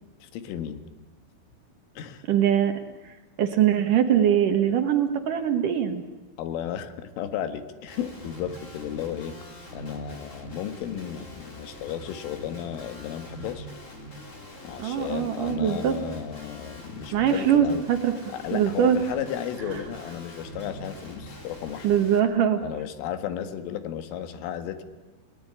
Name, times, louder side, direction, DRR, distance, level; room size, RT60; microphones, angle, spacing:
voice 1, 0.2-0.8 2.0-2.2 6.4-9.4 9.7-13.7 14.6-17.9 18.3-21.9 22.6-24.8, left 10 dB, 80° left, 10 dB, 4.1 m, -34 dB
voice 2, 2.3-2.7 3.0-6.0 14.8-15.9 17.1-18.1 18.5-19.0 19.7-19.8 21.8-22.6, right 9 dB, 65° right, 7 dB, 2.1 m, -22 dB
Guitar, 7.9-22.2, equal, 25° left, 2.0 m, -43 dB
29.5 x 19.5 x 10.0 m, 1.2 s
omnidirectional pair, 5.7 m